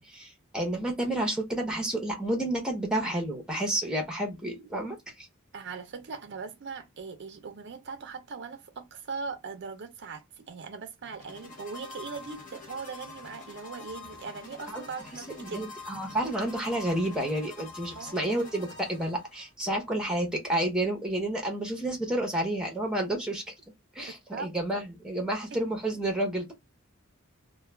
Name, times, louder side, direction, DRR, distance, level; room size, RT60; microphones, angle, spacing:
voice 1, 0.0-5.3 14.7-14.8 15.4-23.4 23.9-26.5, right 1 dB, 5° right, 0.7 m, -30 dB
voice 2, 5.5-15.6 17.9-18.2 24.1-24.5, right 5 dB, 55° right, 0.5 m, -40 dB
sound 1, 11.0-19.5, left 4 dB, 40° left, 0.8 m, -46 dB
2.2 x 2.2 x 3.2 m
head